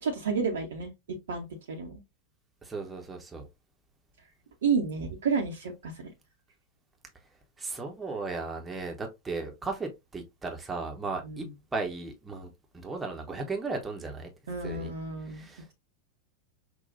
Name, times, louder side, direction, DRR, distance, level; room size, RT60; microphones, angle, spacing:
voice 1, 0.0-2.0 4.6-6.1 11.2-11.5 14.5-15.7, right 5 dB, 65° right, 0.8 m, -31 dB
voice 2, 2.6-3.5 7.6-11.5 11.7-14.3 14.6-14.9 15.3-15.6, right 3 dB, 15° right, 1.0 m, -36 dB
5.9 x 2.4 x 2.5 m
figure-of-eight pair, 90°, 0 cm